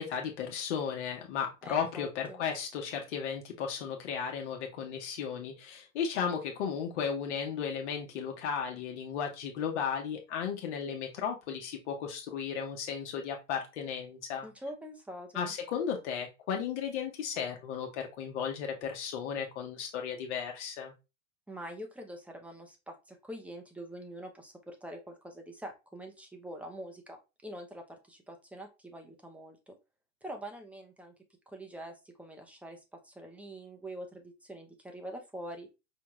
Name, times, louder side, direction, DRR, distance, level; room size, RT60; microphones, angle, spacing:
voice 1, 0.0-14.5 15.3-20.9, left 7 dB, 60° left, 2 dB, 1.1 m, -35 dB
voice 2, 1.6-2.4 14.4-15.5 21.5-29.7 30.2-31.1 31.5-35.7, right 1 dB, 5° right, 3 dB, 0.6 m, -45 dB
5.4 x 2.2 x 3.1 m, 0.26 s
hypercardioid pair, 120°, 39 cm